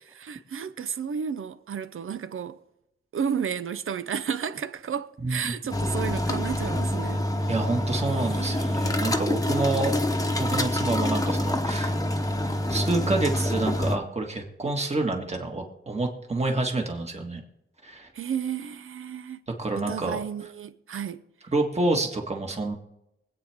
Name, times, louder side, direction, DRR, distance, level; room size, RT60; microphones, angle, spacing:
voice 1, 0.1-2.6 3.1-7.2 8.1-9.1 18.1-19.4 19.7-21.2, right 7 dB, 85° right, 0.7 m, -32 dB
voice 2, 5.2-5.5 7.5-9.9 10.4-11.9 12.7-17.4 17.8-18.1 19.6-20.2 21.5-22.7, right 2 dB, 30° right, 1.8 m, -28 dB
sound 1, 5.7-14.0, left 1 dB, 15° left, 1.0 m, -26 dB
24.0 x 8.9 x 3.6 m
wide cardioid pair, 125°, 21 cm